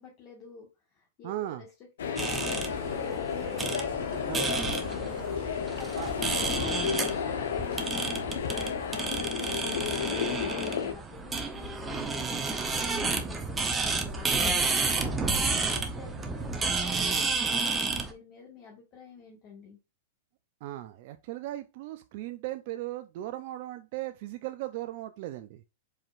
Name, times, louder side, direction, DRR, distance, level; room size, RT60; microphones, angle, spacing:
voice 1, 0.0-3.7 4.9-14.6 14.9-19.8, left 5 dB, 40° left, 1.7 m, -49 dB
voice 2, 1.2-1.6 4.3-4.7 6.0-6.1 20.6-25.6, right 15 dB, 55° right, 0.4 m, -37 dB
sound 1, 2.0-10.9, left 7 dB, 75° left, 0.8 m, -32 dB
sound 2, 2.2-18.1, right 3 dB, 15° right, 0.9 m, -31 dB
4.8 x 4.4 x 2.5 m
hypercardioid pair, 120°, 0 cm